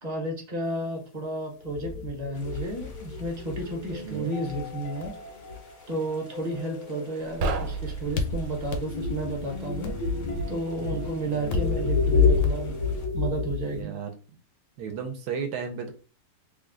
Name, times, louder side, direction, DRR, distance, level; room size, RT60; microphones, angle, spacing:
voice 1, 0.0-5.1 5.9-9.9 10.5-12.8 13.1-14.0, right 2 dB, 30° right, 0 dB, 0.8 m, -32 dB
sound 1, 1.6-4.1 4.5-5.6 8.0-13.8, left 4 dB, 70° left, 1.2 m, -28 dB
sound 2, 2.3-13.1, left 3 dB, 40° left, 0.7 m, -44 dB
sound 3, 7.3-8.9, right 3 dB, 90° right, 1.3 m, -31 dB
voice 2, 10.9-11.7 13.7-14.1 14.8-15.9, right 6 dB, 70° right, 5 dB, 1.1 m, -35 dB
3.2 x 2.3 x 3.7 m, 0.36 s
omnidirectional pair, 1.9 m